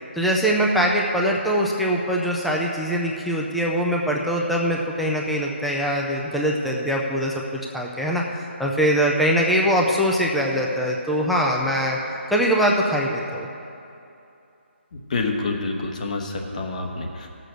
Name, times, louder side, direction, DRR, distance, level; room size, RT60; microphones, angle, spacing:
voice 1, 0.2-8.2 8.6-12.0 12.3-13.5, equal, ahead, -3 dB, 0.4 m, -22 dB
voice 2, 15.1-17.3, left 3 dB, 40° left, 2 dB, 1.2 m, -27 dB
15.0 x 6.8 x 6.3 m, 2.7 s
figure-of-eight pair, 165°, 7 cm